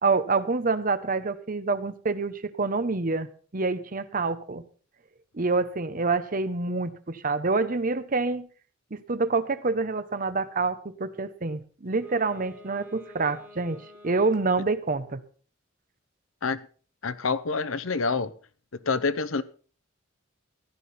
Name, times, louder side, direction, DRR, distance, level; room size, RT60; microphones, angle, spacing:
voice 1, 0.0-3.3 3.5-4.6 5.3-8.5 8.9-15.2, right 3 dB, 45° right, 0.9 m, -27 dB
Wind instrument woodwind instrument, 11.9-14.8, left 2 dB, 10° right, 3.7 m, -49 dB
voice 2, 17.0-18.3 18.8-19.4, left 4 dB, 85° left, 0.8 m, -27 dB
15.5 x 11.5 x 4.2 m
head